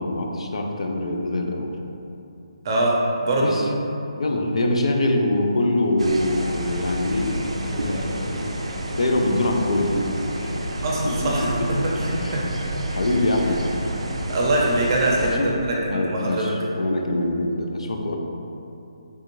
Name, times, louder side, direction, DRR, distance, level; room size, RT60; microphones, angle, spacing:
voice 1, 0.0-1.7 3.4-3.7 4.2-8.6 8.9-10.1 10.4-10.5 11.0-12.4 12.9-13.7 15.2-15.5 15.9-18.1, left 1 dB, 80° left, 2 dB, 0.4 m, -24 dB
voice 2, 2.6-3.0 3.2-3.6 10.8-12.4 14.3-16.5, right 1 dB, 40° right, -3 dB, 0.6 m, -23 dB
sound 1, 6.0-15.4, right 1 dB, 85° right, 0.4 m, -29 dB
3.6 x 2.5 x 3.0 m, 2.8 s
hypercardioid pair, 160°, 3 cm